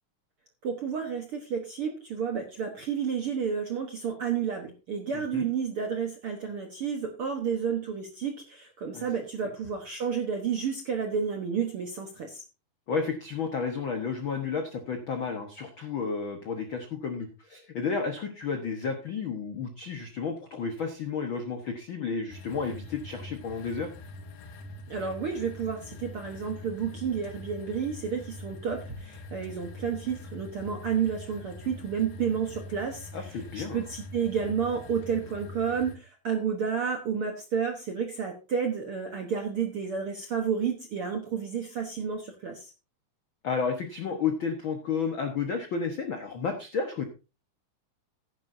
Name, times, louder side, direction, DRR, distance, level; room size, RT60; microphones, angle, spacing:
voice 1, 0.6-12.4 24.9-42.7, right 6 dB, 70° right, 3 dB, 1.3 m, -31 dB
voice 2, 5.1-5.5 8.9-9.0 12.9-23.9 33.1-33.9 43.4-47.0, left 5 dB, 85° left, 5 dB, 1.1 m, -32 dB
sound 1, 22.3-36.0, left 2 dB, 70° left, 2.6 m, -44 dB
15.0 x 10.5 x 2.7 m, 0.31 s
omnidirectional pair, 4.3 m